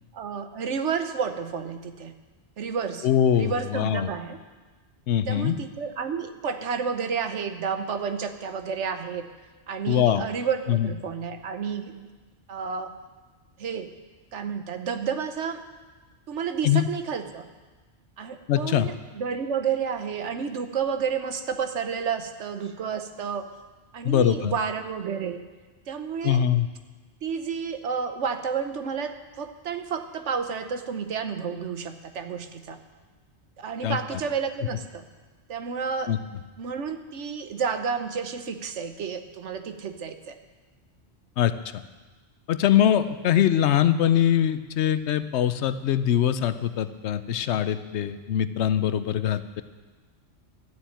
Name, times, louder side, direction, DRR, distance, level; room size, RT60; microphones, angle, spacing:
voice 1, 0.1-2.1 2.6-3.1 3.3-4.4 5.3-9.3 9.7-12.1 12.5-12.9 13.6-13.9 14.3-15.6 16.3-17.5 18.2-23.5 23.9-25.4 25.9-26.4 27.2-32.8 33.6-35.0 35.5-36.1 36.6-40.4, right 6 dB, 85° right, 8 dB, 1.2 m, -30 dB
voice 2, 3.0-4.1 5.1-5.6 9.9-10.2 10.7-10.9 16.6-16.9 18.5-18.9 24.0-24.5 26.2-26.7 33.8-34.2 36.1-36.2 41.4-41.5 42.5-49.6, left 10 dB, 75° left, 12 dB, 0.9 m, -23 dB
12.5 x 7.2 x 8.9 m, 1.3 s
omnidirectional pair, 1.2 m